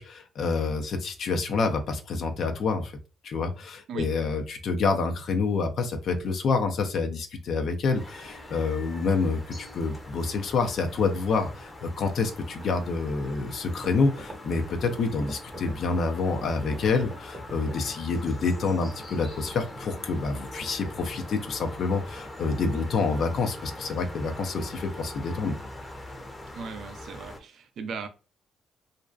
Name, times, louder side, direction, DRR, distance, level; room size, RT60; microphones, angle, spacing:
voice 1, 0.0-2.9 3.2-25.6, left 4 dB, 60° left, 0.5 m, -27 dB
sound 1, 7.9-27.4, left 1 dB, 20° left, 0.7 m, -42 dB
sound 2, 13.7-18.3, equal, 30° right, 0.9 m, -41 dB
voice 2, 26.5-28.1, right 5 dB, 65° right, 0.5 m, -37 dB
2.5 x 2.2 x 2.3 m
cardioid pair, 90°, 0 cm